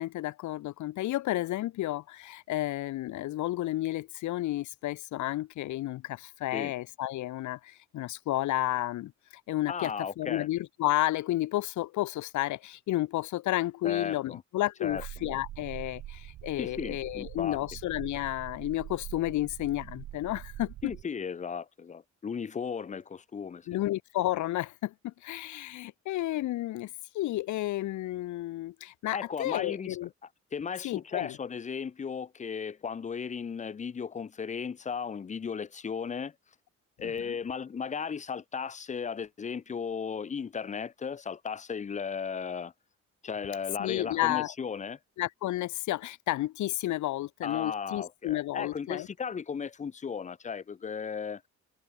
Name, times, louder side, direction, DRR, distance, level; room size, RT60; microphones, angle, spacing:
voice 1, 0.0-9.1 9.5-20.7 23.7-30.1 30.8-31.4 37.0-37.4 43.8-44.5 45.2-49.1, left 15 dB, 75° left, 0.7 m, -32 dB
voice 2, 9.7-10.5 13.8-14.4 14.8-15.0 16.6-17.6 20.8-23.7 29.1-30.0 30.5-36.3 37.0-42.7 43.2-45.0 47.4-51.4, left 6 dB, 25° left, 0.5 m, -35 dB
sound 1, 14.9-21.0, right 14 dB, 80° right, 3.0 m, -44 dB
cardioid pair, 90°, 30 cm